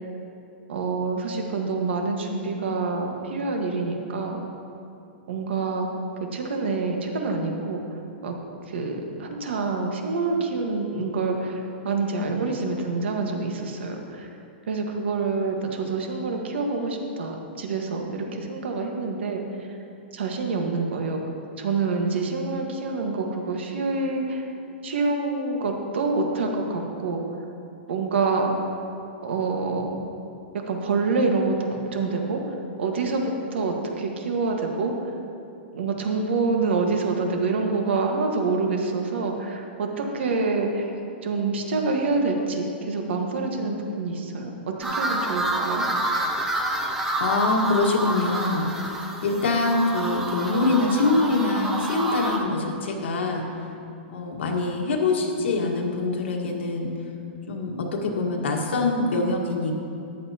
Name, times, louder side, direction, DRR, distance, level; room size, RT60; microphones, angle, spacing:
voice 1, 0.7-4.4 5.3-5.9 6.2-7.8 8.2-8.4 8.7-14.3 14.7-19.4 20.1-21.2 21.6-24.4 24.8-27.2 27.9-28.5 29.2-29.9 30.7-32.4 32.8-34.9 35.7-40.9 41.2-45.9, right 3 dB, 75° right, 2 dB, 1.6 m, -26 dB
sound 1, 44.8-52.4, right 1 dB, 5° right, 0.6 m, -28 dB
voice 2, 47.2-53.5 54.1-56.9 57.5-59.7, left 3 dB, 80° left, 0 dB, 1.7 m, -24 dB
13.5 x 10.5 x 2.9 m, 2.6 s
hypercardioid pair, 175°, 6 cm